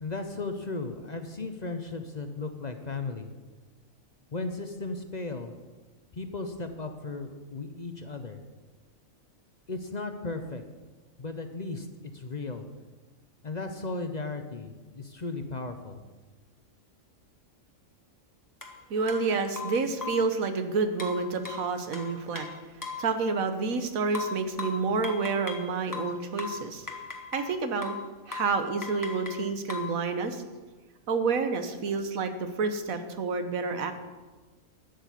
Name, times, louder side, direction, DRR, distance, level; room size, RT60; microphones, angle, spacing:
voice 1, 0.0-3.3 4.3-5.5 6.1-8.4 9.7-10.6 11.2-11.9 12.1-12.7 13.4-16.0, left 3 dB, 40° left, 7 dB, 0.8 m, -35 dB
sound 1, 18.6-18.7 19.1-19.2 19.6-20.3 21.0-23.1 24.1-25.7 25.9-27.5 27.8-28.1 28.3-28.6 28.8-29.9, left 4 dB, 15° left, 1.1 m, -38 dB
voice 2, 18.9-22.5 23.0-26.9 27.3-27.9 28.3-30.4 31.1-33.9, right 4 dB, 90° right, 8 dB, 1.5 m, -29 dB
11.5 x 6.6 x 8.2 m, 1.3 s
omnidirectional pair, 1.4 m